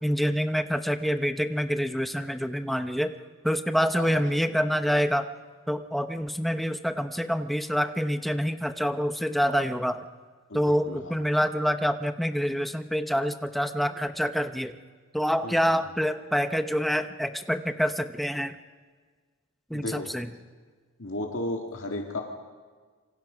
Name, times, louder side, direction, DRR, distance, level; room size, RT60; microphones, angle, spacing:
voice 1, 0.0-3.1 3.4-5.3 5.7-10.0 10.5-14.8 15.1-18.6 19.7-20.3, equal, ahead, 8 dB, 0.9 m, -26 dB
voice 2, 10.5-11.1 15.4-15.6 19.7-20.1 21.0-22.2, left 1 dB, 65° left, 1 dB, 2.1 m, -34 dB
27.5 x 25.0 x 5.1 m, 1.5 s
head